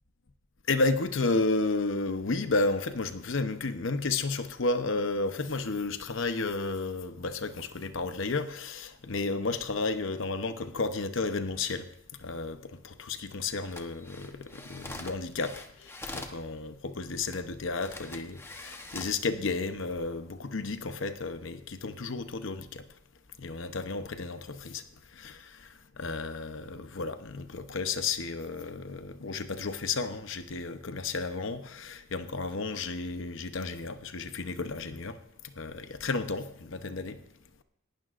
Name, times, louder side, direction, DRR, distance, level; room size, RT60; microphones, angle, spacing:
voice 1, 0.7-11.9 12.1-22.9 23.4-37.2, left 3 dB, 65° left, 0.8 m, -32 dB
sound 1, 13.6-16.4 17.3-17.4 17.8-19.2 19.8-20.0, left 2 dB, 10° left, 1.0 m, -44 dB
18.5 x 12.0 x 2.5 m
head